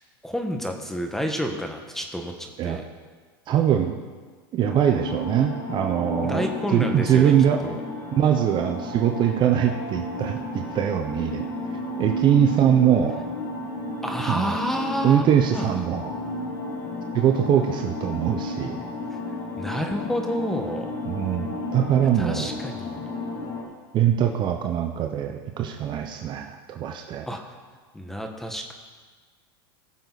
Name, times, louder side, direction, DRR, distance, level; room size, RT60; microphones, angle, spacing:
voice 1, 0.2-2.9 6.2-7.3 7.6-7.8 14.0-15.3 15.5-15.8 19.1-19.2 19.6-20.9 22.1-23.1 27.3-27.4 27.9-28.7, equal, 5° left, 3 dB, 1.5 m, -29 dB
voice 2, 3.5-4.0 4.5-7.6 8.1-11.4 11.7-13.2 14.2-14.6 15.0-16.1 17.1-18.8 21.1-22.5 23.9-27.3, right 9 dB, 40° right, 5 dB, 0.9 m, -22 dB
sound 1, 4.6-23.6, left 2 dB, 60° left, 3.0 m, -32 dB
20.0 x 6.8 x 4.1 m, 1.5 s
supercardioid pair, 115°, 12 cm